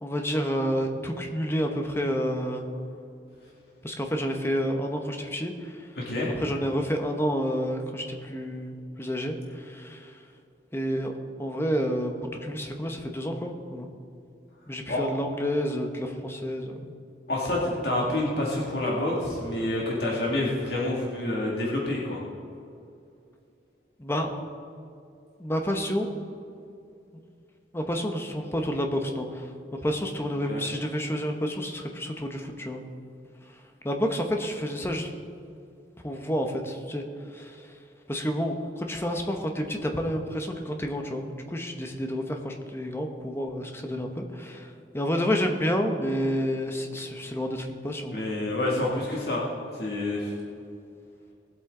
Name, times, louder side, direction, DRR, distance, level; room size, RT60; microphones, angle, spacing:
voice 1, 0.0-2.7 3.8-5.9 6.4-10.1 10.7-13.9 14.7-16.8 24.0-24.4 25.4-26.1 27.7-29.5 29.8-32.8 33.8-35.1 36.0-37.0 37.3-37.6 38.1-48.2, equal, 15° left, 3 dB, 1.0 m, -29 dB
voice 2, 6.0-6.4 14.9-15.1 17.3-22.2 30.5-30.7 48.1-49.4 49.7-50.3, left 1 dB, 60° left, -4 dB, 2.3 m, -28 dB
19.5 x 8.1 x 3.8 m, 2.5 s
head